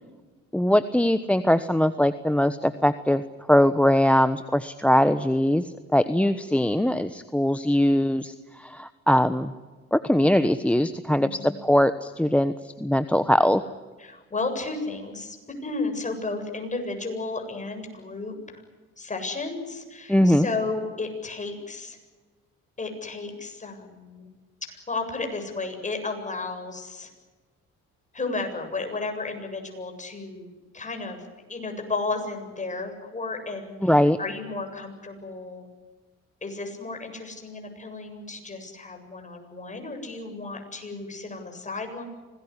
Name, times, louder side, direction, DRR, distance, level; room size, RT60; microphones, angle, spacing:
voice 1, 0.5-3.2 3.5-9.5 9.9-13.6 20.1-20.5 33.8-34.2, left 1 dB, 5° left, 12 dB, 1.1 m, -21 dB
voice 2, 11.2-11.5 14.0-18.6 19.0-22.0 22.8-24.3 24.7-27.1 28.1-31.2 31.5-35.6 36.4-42.0, left 3 dB, 25° left, 5 dB, 7.7 m, -33 dB
26.0 x 19.5 x 9.9 m, 1.3 s
cardioid pair, 85°, 31 cm